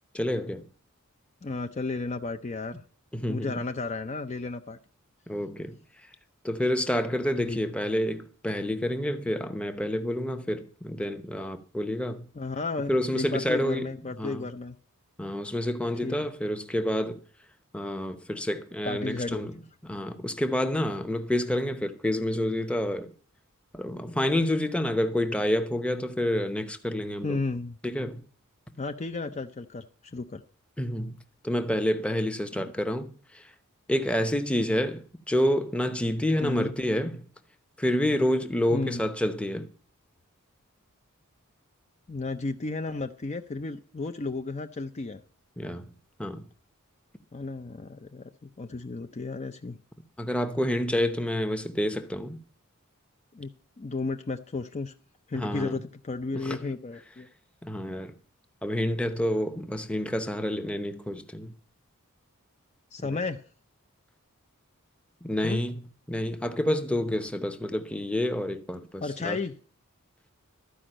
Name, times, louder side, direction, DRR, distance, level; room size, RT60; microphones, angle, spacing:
voice 1, 0.1-0.6 3.1-3.6 5.3-5.8 6.4-12.3 12.9-13.9 14.2-14.5 15.2-17.2 17.7-19.5 19.8-23.1 23.7-27.4 27.8-28.2 30.8-31.2 31.4-33.5 33.9-37.3 37.8-39.7 45.6-45.9 46.2-46.5 50.2-52.4 55.3-55.8 56.3-56.6 57.6-58.1 58.6-61.5 63.0-63.2 65.2-65.8 66.1-69.4, left 1 dB, 5° left, 0.8 m, -28 dB
voice 2, 1.4-2.8 3.3-4.8 7.4-7.6 12.4-14.7 16.0-16.2 18.8-19.5 27.2-27.8 28.8-29.8 30.1-30.4 32.6-32.7 36.4-36.7 38.7-39.1 42.1-45.2 47.3-48.3 48.6-49.8 53.3-53.5 53.8-54.9 55.3-57.3 62.9-63.4 65.4-65.6 69.0-69.5, left 3 dB, 30° left, 0.5 m, -33 dB
12.5 x 5.2 x 8.8 m
head